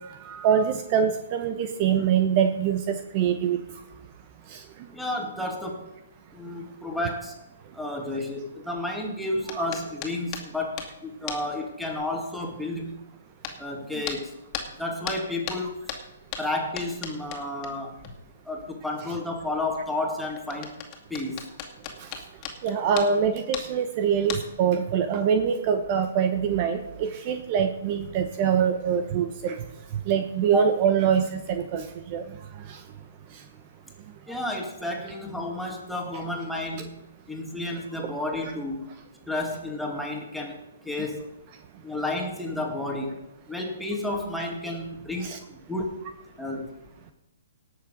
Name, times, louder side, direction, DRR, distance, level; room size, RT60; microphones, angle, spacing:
voice 1, 0.2-3.6 4.5-4.6 9.5-9.7 22.6-29.6 30.1-31.8 32.1-32.2 45.2-45.4, right 7 dB, 35° right, 8 dB, 1.0 m, -24 dB
voice 2, 4.9-5.9 6.3-7.4 7.7-13.0 13.6-14.3 14.8-15.8 16.4-18.0 18.5-20.7 21.1-21.5 30.5-30.7 34.3-37.0 37.3-38.9 39.3-40.6 40.8-41.3 41.8-43.2 43.5-46.0 46.4-46.7, left 1 dB, ahead, -1 dB, 2.4 m, -31 dB
sound 1, 9.5-11.0 11.3-11.6 12.0-12.1 13.4-13.6 14.0-14.2 14.5-18.1 18.4-18.5 19.4-23.8 24.1-24.7 25.4-25.5 26.0-26.1, left 7 dB, 30° left, 2.3 m, -37 dB
18.5 x 7.1 x 5.3 m, 0.92 s
figure-of-eight pair, 130°, 0 cm